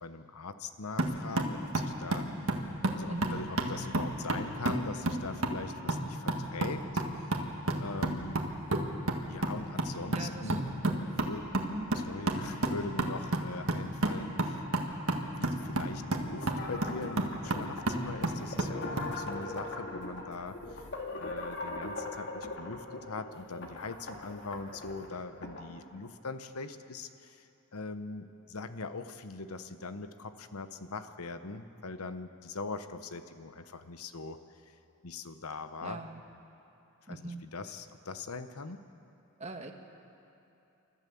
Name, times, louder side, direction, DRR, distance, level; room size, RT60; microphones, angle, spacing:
voice 1, 0.0-2.3 2.9-7.3 7.8-8.4 9.3-10.6 11.2-11.5 12.1-14.6 15.3-20.9 21.2-34.4 35.0-36.1 37.1-38.8, left 3 dB, 75° left, 10 dB, 0.9 m, -41 dB
sound 1, 1.0-19.1, right 1 dB, 65° right, 1.7 m, -32 dB
voice 2, 3.1-3.5 10.1-10.6 11.6-11.9 35.8-36.2 37.1-37.4 39.4-39.7, right 2 dB, 30° right, 4 dB, 1.4 m, -40 dB
sound 2, 16.1-25.7, left 2 dB, 55° left, 2.1 m, -41 dB
29.5 x 13.0 x 7.0 m, 2.9 s
head